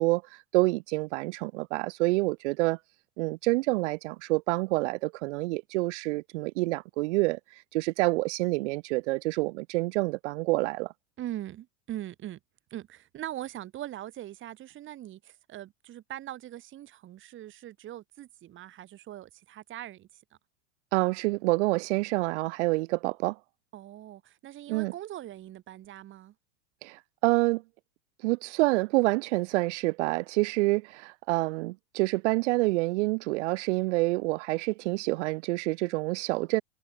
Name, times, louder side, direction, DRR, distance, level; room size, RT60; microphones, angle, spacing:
voice 1, 0.0-2.8 3.2-7.4 7.7-10.9 20.9-23.4 24.7-24.9 26.8-27.6 28.2-36.6, right 23 dB, 65° right, 1.4 m, -27 dB
voice 2, 11.2-12.4 12.7-20.1 23.7-26.3, right 13 dB, 30° right, 1.6 m, -41 dB
supercardioid pair, 125°, 37 cm